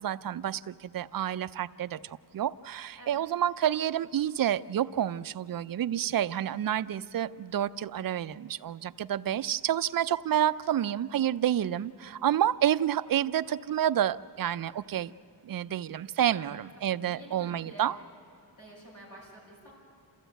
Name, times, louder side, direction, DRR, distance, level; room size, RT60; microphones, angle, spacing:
voice 1, 0.0-15.1 15.5-18.0, right 11 dB, 55° right, 13 dB, 0.5 m, -29 dB
voice 2, 12.0-12.4 16.4-17.9 18.6-19.7, equal, 45° left, -3 dB, 6.0 m, -50 dB
28.0 x 14.5 x 9.1 m, 2.9 s
wide cardioid pair, 175°, 43 cm